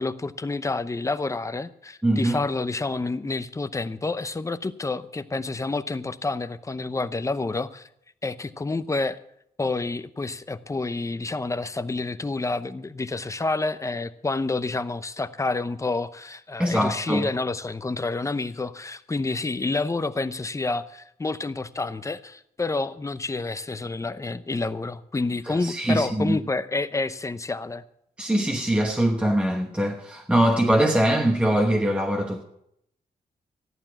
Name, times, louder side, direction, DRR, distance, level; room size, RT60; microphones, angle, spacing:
voice 1, 0.0-7.9 8.2-9.2 9.6-27.8, left 3 dB, 20° left, 0.7 m, -29 dB
voice 2, 2.0-2.4 16.6-17.3 25.4-26.4 28.2-32.4, right 1 dB, 5° right, 1.1 m, -22 dB
14.0 x 11.5 x 5.9 m
wide cardioid pair, 115°, 16 cm